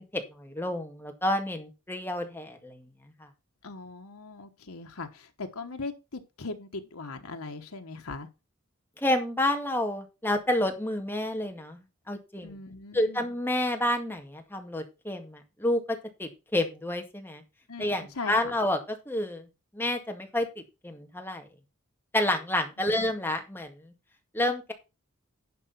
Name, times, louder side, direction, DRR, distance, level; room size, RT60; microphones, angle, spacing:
voice 1, 0.0-2.9 3.2-3.3 9.0-12.6 12.9-17.4 17.8-19.5 19.7-21.5 22.1-23.9 24.3-24.7, left 1 dB, 10° left, 1.9 m, -29 dB
voice 2, 3.6-8.3 12.4-13.3 17.7-18.5 22.8-22.9, left 3 dB, 90° left, 1.2 m, -40 dB
11.0 x 4.9 x 5.9 m
head